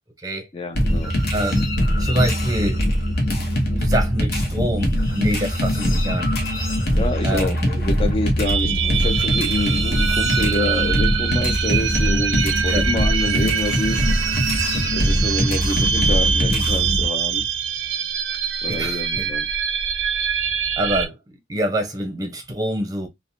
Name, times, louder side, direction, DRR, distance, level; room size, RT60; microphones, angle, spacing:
voice 1, 0.5-1.2 6.9-14.3 14.9-17.5 18.6-19.5, left 2 dB, 30° left, 0.4 m, -27 dB
sound 1, 0.8-17.0, equal, 60° left, 0.8 m, -22 dB
voice 2, 1.3-1.6 2.0-2.8 3.7-6.3 7.2-7.7 12.7-12.8 18.7-19.3 20.8-21.2 21.5-23.1, right 1 dB, 20° right, 0.6 m, -25 dB
sound 2, 8.5-21.1, right 7 dB, 90° right, 0.4 m, -24 dB
2.7 x 2.0 x 2.6 m
head